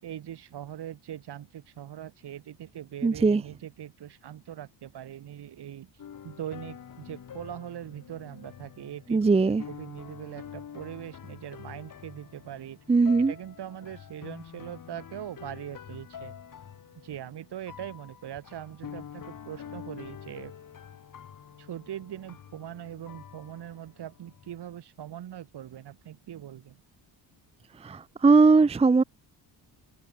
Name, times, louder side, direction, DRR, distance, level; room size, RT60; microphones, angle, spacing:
voice 1, 0.0-5.9 6.2-9.2 9.5-12.8 13.3-16.3 17.0-20.5 21.6-26.8, right 11 dB, 60° right, 4.2 m, -41 dB
voice 2, 3.0-3.4 9.1-9.6 12.9-13.3 27.8-29.0, right 4 dB, 15° right, 0.6 m, -20 dB
sound 1, 6.0-24.6, left 8 dB, 45° left, 4.4 m, -46 dB
cardioid pair, 145°, 45 cm